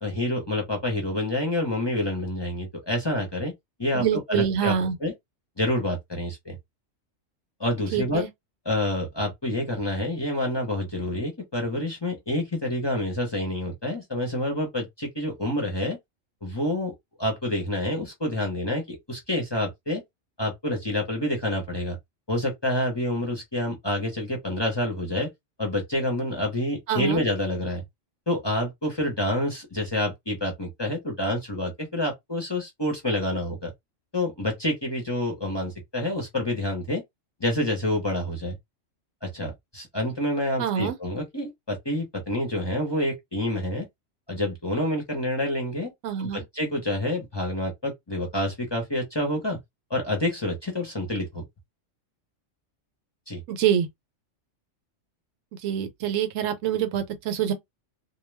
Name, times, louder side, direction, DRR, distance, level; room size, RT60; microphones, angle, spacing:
voice 1, 0.0-3.5 3.8-4.7 5.0-5.1 5.6-6.6 7.6-8.2 8.7-16.0 16.4-20.0 20.4-22.0 22.3-25.3 25.6-27.8 28.3-33.7 34.1-37.0 37.4-38.6 39.2-43.9 44.3-45.9 46.2-49.6 49.9-51.4 53.3-53.4, left 1 dB, 25° left, 0.7 m, -28 dB
voice 2, 3.9-5.0 7.9-8.3 26.9-27.2 40.6-40.9 46.0-46.4 53.5-53.9 55.6-57.5, right 9 dB, 80° right, 1.0 m, -25 dB
2.2 x 2.2 x 3.2 m
omnidirectional pair, 1.3 m